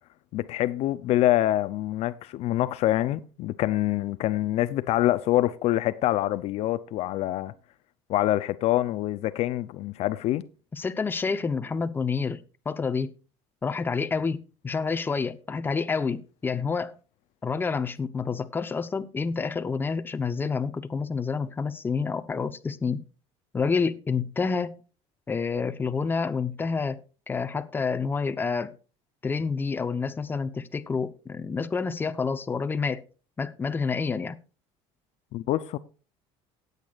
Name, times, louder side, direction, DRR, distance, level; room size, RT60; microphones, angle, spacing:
voice 1, 0.3-7.5 8.1-10.4 35.3-35.8, left 14 dB, 55° left, 0.6 m, -25 dB
voice 2, 10.7-13.1 13.6-17.0 17.4-23.0 23.5-24.8 25.3-27.0 27.3-28.7 29.2-33.0 33.4-34.4, left 5 dB, 15° left, 0.8 m, -28 dB
18.0 x 8.2 x 2.4 m
cardioid pair, 135°, 12 cm